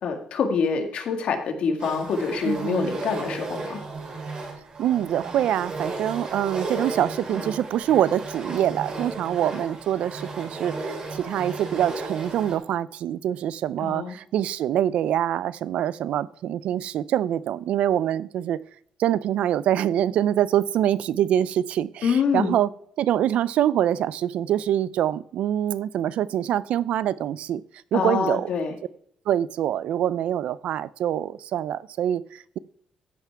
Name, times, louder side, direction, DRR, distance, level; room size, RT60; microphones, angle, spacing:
voice 1, 0.0-3.8 13.8-14.2 22.0-22.5 27.9-28.7, left 5 dB, 60° left, 1.9 m, -25 dB
sound 1, 1.8-12.6, right 3 dB, 40° right, 2.7 m, -34 dB
voice 2, 2.4-3.0 4.8-18.6 19.0-22.7 23.0-27.6 27.9-28.5 29.3-32.6, right 11 dB, 75° right, 0.4 m, -25 dB
14.0 x 5.9 x 4.5 m
cardioid pair, 135°, 2 cm